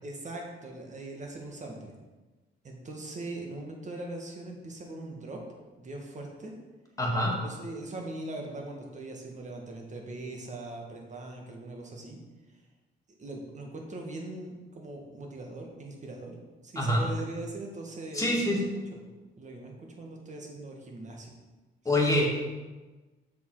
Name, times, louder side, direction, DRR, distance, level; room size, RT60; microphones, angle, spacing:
voice 1, 0.0-1.9 2.6-5.4 5.8-6.5 7.4-12.2 13.2-18.6 18.9-19.0 19.4-21.3, right 2 dB, 40° right, 1 dB, 1.9 m, -41 dB
voice 2, 7.0-7.3 16.8-17.0 18.1-18.6 21.8-22.4, left 1 dB, 15° left, -3 dB, 2.3 m, -25 dB
7.0 x 6.4 x 4.9 m, 1.2 s
cardioid pair, 90°, 20 cm